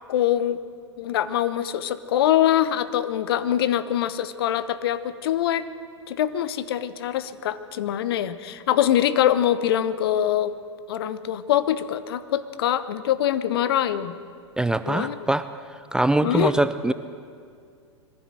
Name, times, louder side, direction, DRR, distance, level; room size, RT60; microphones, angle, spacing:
voice 1, 0.1-0.6 1.0-5.7 6.1-10.5 10.9-14.1 14.8-15.2 16.2-16.5, left 11 dB, 55° left, 13 dB, 1.0 m, -23 dB
voice 2, 14.6-15.5 15.9-16.9, right 2 dB, 5° right, 12 dB, 0.5 m, -22 dB
22.0 x 15.0 x 7.8 m, 2.2 s
figure-of-eight pair, 95°, 15 cm